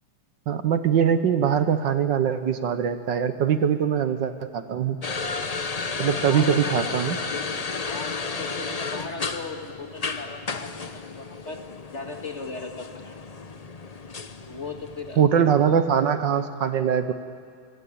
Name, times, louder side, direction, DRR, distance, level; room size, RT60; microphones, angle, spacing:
voice 1, 0.5-5.0 6.0-7.2 15.2-17.1, right 8 dB, 65° right, 10 dB, 1.6 m, -22 dB
sound 1, 5.0-15.2, left 4 dB, 70° left, 0.3 m, -33 dB
voice 2, 6.0-6.8 7.9-11.6 11.9-13.2 14.5-15.9, left 3 dB, 35° left, 4 dB, 2.0 m, -38 dB
26.0 x 25.0 x 8.6 m, 2.2 s
omnidirectional pair, 2.3 m